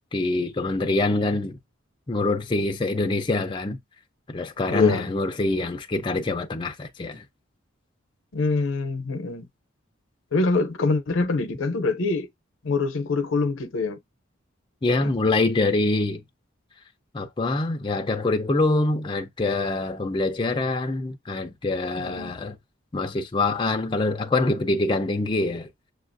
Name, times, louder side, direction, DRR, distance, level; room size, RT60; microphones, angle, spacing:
voice 1, 0.1-1.6 2.1-3.8 4.3-7.2 14.8-16.2 17.1-22.6 22.9-25.7, left 2 dB, 25° left, 0.4 m, -25 dB
voice 2, 4.7-5.1 8.3-9.5 10.3-12.3 12.6-14.0 15.0-15.1 22.0-22.4, left 3 dB, 80° left, 0.6 m, -24 dB
6.5 x 2.4 x 2.6 m
head